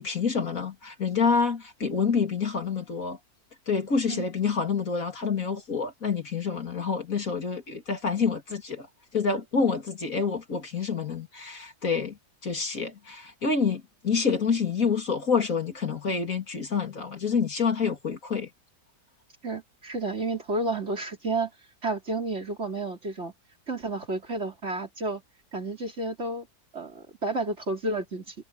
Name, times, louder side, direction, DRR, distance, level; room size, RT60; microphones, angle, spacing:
voice 1, 0.0-3.2 3.7-8.9 9.1-12.2 12.4-18.5, left 5 dB, 60° left, 3.3 m, -27 dB
voice 2, 19.4-21.5 21.8-23.3 23.7-25.2 25.5-26.5 26.7-28.3, right 2 dB, 45° right, 4.0 m, -31 dB
omnidirectional pair, 1.7 m